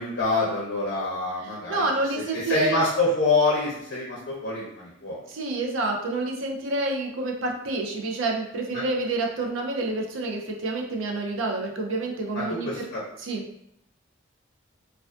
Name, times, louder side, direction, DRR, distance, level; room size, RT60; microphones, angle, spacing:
voice 1, 0.0-1.9 2.3-5.2 8.7-8.8 12.3-13.0, left 3 dB, 60° left, -5 dB, 0.5 m, -26 dB
voice 2, 1.7-2.8 5.3-12.9 13.2-13.4, right 2 dB, 85° right, 1 dB, 0.5 m, -28 dB
2.4 x 2.3 x 2.3 m, 0.74 s
head